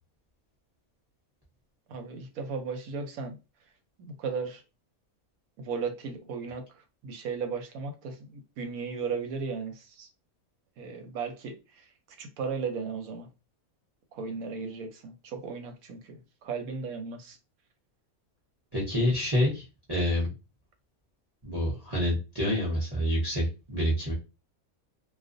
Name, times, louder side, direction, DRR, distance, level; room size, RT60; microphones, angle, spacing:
voice 1, 1.9-3.4 4.0-4.6 5.6-6.7 7.0-10.1 10.8-11.8 12.2-13.3 14.1-17.4, right 5 dB, 85° right, 1.1 m, -36 dB
voice 2, 18.7-20.3 21.4-24.1, left 1 dB, 20° right, 0.8 m, -27 dB
2.4 x 2.2 x 2.5 m
omnidirectional pair, 1.5 m